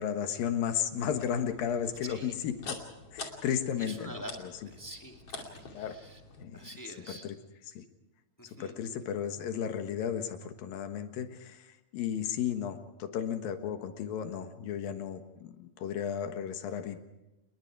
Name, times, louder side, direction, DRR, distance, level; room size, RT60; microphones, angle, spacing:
voice 1, 0.0-2.8 3.1-4.5 5.7-6.0 6.4-6.6 7.1-7.4 7.7-7.8 8.6-11.6 11.9-17.0, left 8 dB, 75° left, 7 dB, 3.1 m, -34 dB
sound 1, 1.1-6.4, left 4 dB, 45° left, 3.3 m, -46 dB
voice 2, 2.0-2.3 3.8-4.4 4.6-6.2 6.5-7.3 8.4-8.8, right 1 dB, 10° left, 2 dB, 1.2 m, -46 dB
29.0 x 21.0 x 4.7 m, 1.0 s
omnidirectional pair, 4.2 m